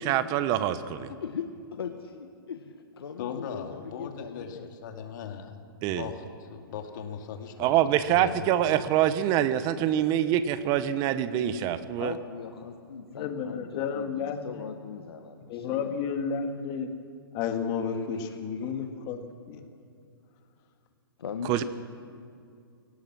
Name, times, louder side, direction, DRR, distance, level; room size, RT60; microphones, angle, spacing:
voice 1, 0.1-1.1 5.8-6.0 7.6-12.1 21.5-21.6, right 11 dB, 30° right, 13 dB, 1.0 m, -25 dB
voice 2, 1.2-4.7 12.0-16.0 17.9-18.9 21.2-21.6, left 6 dB, 80° left, 6 dB, 1.4 m, -40 dB
voice 3, 3.2-5.6 6.0-8.4, left 7 dB, 55° left, 5 dB, 2.4 m, -39 dB
voice 4, 13.1-14.6 15.5-16.9 17.3-19.2 19.5-19.6, left 6 dB, 35° left, 5 dB, 2.1 m, -32 dB
24.5 x 17.5 x 6.2 m, 2.4 s
hypercardioid pair, 140°, 13 cm